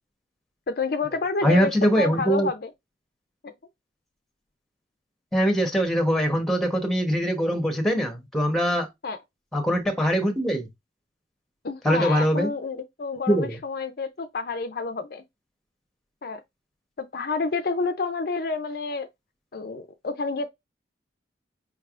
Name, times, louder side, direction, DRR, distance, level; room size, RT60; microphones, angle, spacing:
voice 1, 0.7-1.7 2.0-2.7 3.4-3.5 9.0-9.2 11.6-15.2 16.2-16.4 17.0-19.1 19.5-20.5, left 4 dB, 55° left, 0.5 m, -29 dB
voice 2, 1.4-2.5 5.3-8.9 9.5-10.7 11.8-12.5 13.3-13.6, equal, ahead, 1.0 m, -22 dB
5.2 x 3.3 x 2.4 m
head